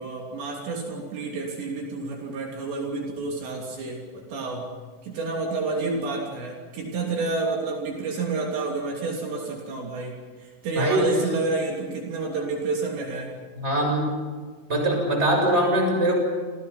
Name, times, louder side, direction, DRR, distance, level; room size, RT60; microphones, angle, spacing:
voice 1, 0.0-4.7 5.0-10.1 10.4-13.3, right 3 dB, 70° right, 0 dB, 5.2 m, -29 dB
voice 2, 10.7-11.2 13.6-14.1 14.7-16.2, right 1 dB, 15° right, 1 dB, 7.7 m, -22 dB
29.5 x 28.0 x 5.8 m, 1.5 s
omnidirectional pair, 5.4 m